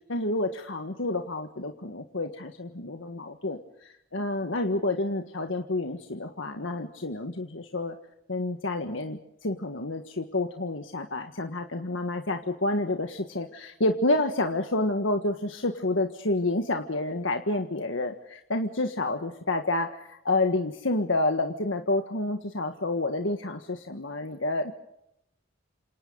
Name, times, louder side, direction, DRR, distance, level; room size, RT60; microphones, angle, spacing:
voice 1, 0.1-8.0 8.3-24.7, left 2 dB, 80° left, 5 dB, 1.7 m, -29 dB
30.0 x 27.5 x 4.0 m, 0.79 s
head